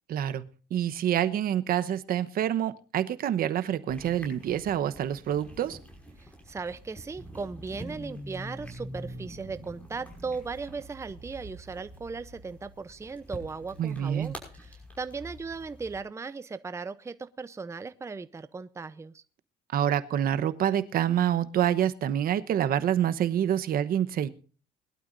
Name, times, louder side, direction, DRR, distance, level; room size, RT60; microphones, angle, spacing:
voice 1, 0.1-0.4 0.7-5.8 13.8-14.3 19.7-24.3, right 10 dB, 60° right, 12 dB, 1.0 m, -27 dB
sound 1, 3.9-16.0, right 1 dB, 10° left, 5.6 m, -45 dB
voice 2, 6.2-19.2, right 4 dB, 15° right, 13 dB, 0.7 m, -37 dB
21.5 x 12.0 x 2.6 m, 0.39 s
cardioid pair, 110°, 17 cm